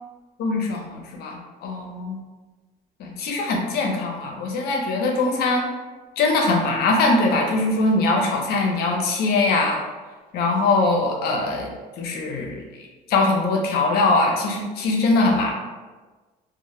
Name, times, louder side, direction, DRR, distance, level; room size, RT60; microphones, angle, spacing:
voice 1, 0.4-2.2 3.0-5.7 6.2-9.8 10.3-12.6 13.1-15.5, left 2 dB, 70° left, 1 dB, 0.5 m, -22 dB
2.1 x 2.0 x 2.9 m, 1.3 s
cardioid pair, 110°, 17 cm